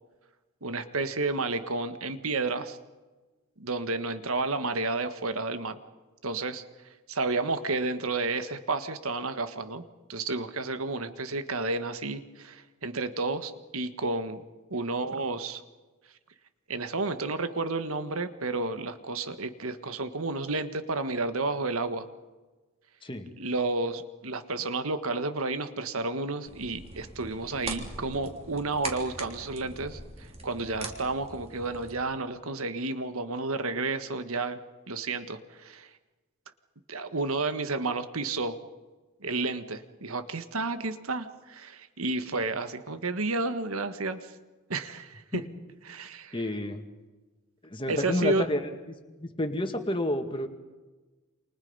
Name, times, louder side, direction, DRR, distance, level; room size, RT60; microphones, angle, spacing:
voice 1, 0.6-2.8 3.6-5.8 6.2-6.6 7.1-9.8 10.1-14.4 14.7-15.6 16.7-22.1 23.4-34.6 34.9-35.9 36.9-38.6 39.2-44.2 44.7-45.4 45.9-46.3 47.9-48.4, right 3 dB, 75° right, 10 dB, 1.6 m, -31 dB
sound 1, 26.5-32.0, right 2 dB, 30° right, 3.5 m, -42 dB
voice 2, 46.3-46.8 47.6-48.7 49.2-50.5, left 1 dB, 25° left, 5 dB, 2.1 m, -30 dB
29.0 x 27.5 x 5.6 m, 1.2 s
head